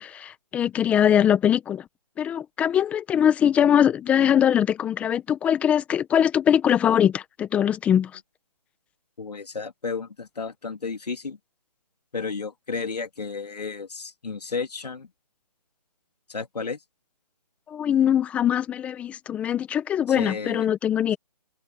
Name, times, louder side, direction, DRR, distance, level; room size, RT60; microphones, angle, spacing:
voice 1, 0.0-1.8 2.2-8.1 17.7-21.2, left 9 dB, 5° left, 1.0 m, -22 dB
voice 2, 9.2-11.4 12.1-15.1 16.3-16.8 20.1-20.7, left 4 dB, 75° left, 3.0 m, -32 dB
figure-of-eight pair, 160°, 21 cm